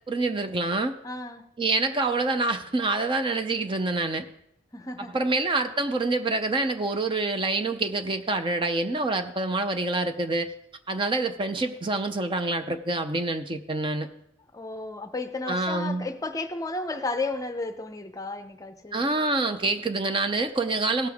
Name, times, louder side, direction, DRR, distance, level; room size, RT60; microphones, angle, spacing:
voice 1, 0.1-1.0 1.6-4.3 5.1-10.5 10.9-14.1 15.5-16.1 18.9-21.1, right 2 dB, 30° right, 0.5 m, -26 dB
voice 2, 1.0-1.5 4.7-5.2 14.5-19.0, left 3 dB, 20° left, 0.6 m, -33 dB
17.5 x 6.7 x 3.5 m
head